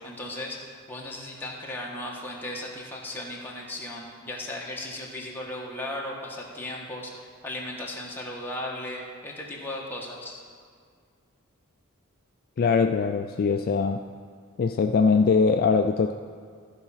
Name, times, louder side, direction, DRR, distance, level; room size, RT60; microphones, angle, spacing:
voice 1, 0.0-7.1 7.4-10.4, left 1 dB, 10° left, -3 dB, 1.3 m, -36 dB
voice 2, 12.6-14.0 14.6-16.1, left 5 dB, 40° left, 5 dB, 0.3 m, -22 dB
14.0 x 4.8 x 5.7 m, 2.1 s
head